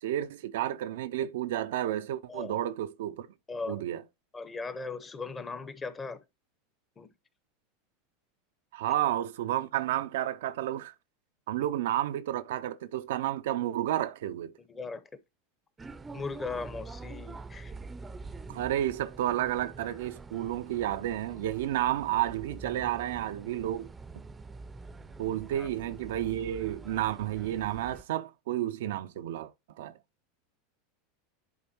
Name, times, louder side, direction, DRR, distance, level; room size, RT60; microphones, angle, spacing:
voice 1, 0.0-3.3 3.7-4.0 8.7-10.9 11.5-14.5 18.5-23.9 25.2-29.5 29.8-29.9, right 12 dB, 70° right, 0.4 m, -31 dB
voice 2, 3.5-3.8 4.3-6.2 7.0-7.1 14.7-15.0 16.1-17.7 25.5-25.7, left 4 dB, 25° left, 0.9 m, -38 dB
sound 1, 15.8-28.0, right 3 dB, 20° right, 0.6 m, -46 dB
10.5 x 3.8 x 2.9 m
hypercardioid pair, 95°, 0 cm